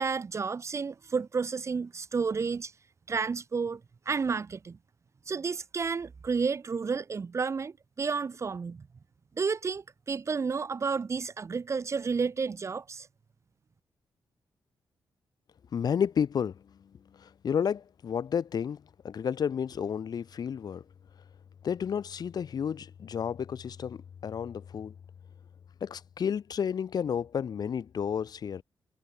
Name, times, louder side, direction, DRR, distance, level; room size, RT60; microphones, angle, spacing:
voice 1, 0.0-2.7 3.1-3.8 4.1-4.8 5.3-8.8 9.4-13.1, right 5 dB, 35° right, 2.9 m, -31 dB
voice 2, 15.7-16.6 17.1-20.8 21.6-24.9 25.8-28.6, left 7 dB, 55° left, 2.5 m, -31 dB
wide cardioid pair, 135°, 8 cm